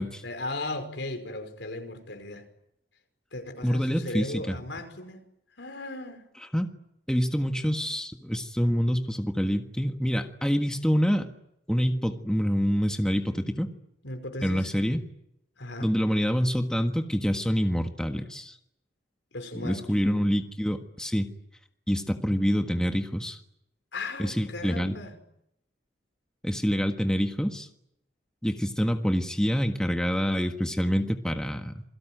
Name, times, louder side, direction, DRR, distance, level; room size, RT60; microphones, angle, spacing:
voice 1, 0.2-2.5 3.3-5.2 5.6-6.3 14.0-14.7 15.6-15.9 19.3-19.9 23.9-25.2, left 2 dB, 85° left, 6 dB, 5.4 m, -37 dB
voice 2, 3.6-4.6 6.5-6.7 7.1-11.3 11.7-13.7 14.4-15.0 15.8-18.5 19.5-21.3 21.9-23.4 24.2-25.0 26.4-27.7 28.4-31.8, equal, 5° left, 5 dB, 1.5 m, -26 dB
27.5 x 22.5 x 9.2 m, 0.80 s
head